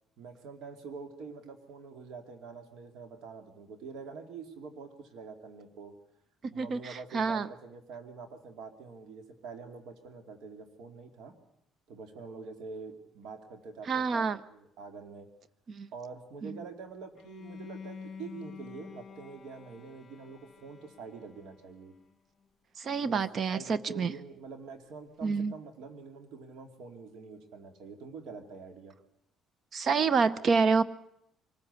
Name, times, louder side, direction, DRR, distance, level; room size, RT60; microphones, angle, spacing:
voice 1, 0.2-5.9 6.5-11.3 11.9-15.3 15.9-21.9 23.0-23.2 23.5-28.9, right 5 dB, 75° right, 7 dB, 2.4 m, -46 dB
voice 2, 6.5-7.5 13.9-14.4 15.7-15.9 16.4-16.6 22.8-24.1 25.2-25.5 29.7-30.8, right 5 dB, 45° right, 17 dB, 0.7 m, -28 dB
Bowed string instrument, 17.1-22.1, left 6 dB, 35° left, 1.6 m, -48 dB
23.5 x 14.0 x 8.2 m, 0.80 s
cardioid pair, 105°, 0 cm